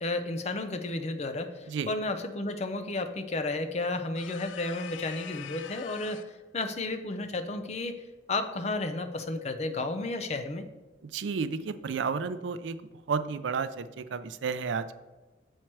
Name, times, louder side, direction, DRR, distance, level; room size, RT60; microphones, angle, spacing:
voice 1, 0.0-8.0 8.3-10.7, left 2 dB, 35° left, 7 dB, 0.5 m, -32 dB
sound 1, 4.2-6.4, left 10 dB, 85° left, 0.3 m, -44 dB
voice 2, 11.0-12.8 13.1-14.9, right 5 dB, 80° right, 12 dB, 0.4 m, -32 dB
7.5 x 4.5 x 4.6 m, 1.2 s
head